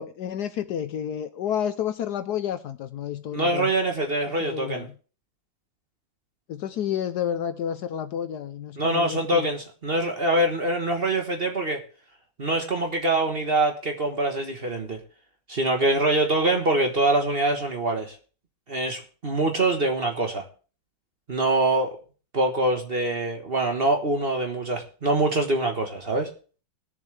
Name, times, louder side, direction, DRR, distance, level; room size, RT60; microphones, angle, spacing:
voice 1, 0.0-3.7 4.4-4.9 6.5-9.5, left 9 dB, 65° left, 9 dB, 1.1 m, -30 dB
voice 2, 3.3-4.8 8.8-11.8 12.4-15.0 15.5-18.2 18.7-20.4 21.3-21.9 22.3-26.3, right 2 dB, 35° right, 4 dB, 1.3 m, -24 dB
20.5 x 7.1 x 3.3 m, 0.38 s
omnidirectional pair, 2.1 m